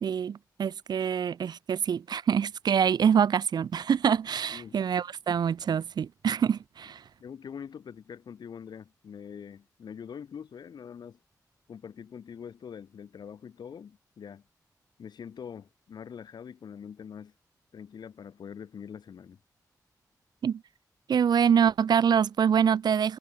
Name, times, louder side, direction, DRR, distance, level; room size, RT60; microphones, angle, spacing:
voice 1, 0.0-7.0 20.4-20.6 21.1-23.2, right 7 dB, 85° right, 1.1 m, -25 dB
voice 2, 7.2-11.2 11.7-14.4 15.0-17.3 17.7-19.4, left 7 dB, 85° left, 6.3 m, -44 dB
wide cardioid pair, 100°, 7 cm